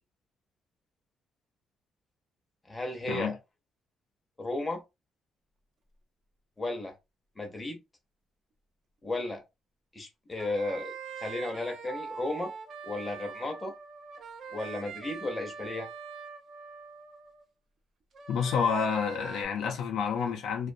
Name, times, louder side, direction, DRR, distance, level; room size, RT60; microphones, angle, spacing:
voice 1, 2.7-3.4 4.4-4.8 6.6-6.9 7.4-7.8 9.0-9.4 9.9-10.9 11.2-12.5 12.8-13.7 14.5-15.9, left 2 dB, 15° left, 0.7 m, -34 dB
sound 1, 10.3-17.4 18.1-19.4, right 6 dB, 45° right, 0.5 m, -43 dB
voice 2, 18.3-20.7, left 6 dB, 80° left, 0.5 m, -29 dB
2.5 x 2.2 x 2.6 m
cardioid pair, 175°, 0 cm